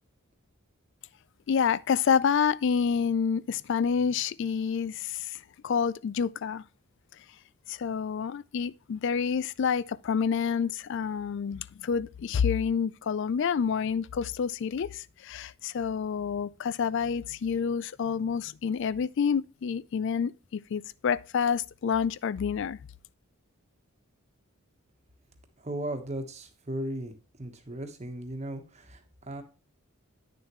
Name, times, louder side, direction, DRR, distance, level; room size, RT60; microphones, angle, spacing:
voice 1, 1.5-5.4 5.6-6.6 7.7-22.8, left 6 dB, 55° left, 0.3 m, -28 dB
voice 2, 25.6-29.4, right 1 dB, 30° right, 1.2 m, -37 dB
9.7 x 6.7 x 3.0 m
head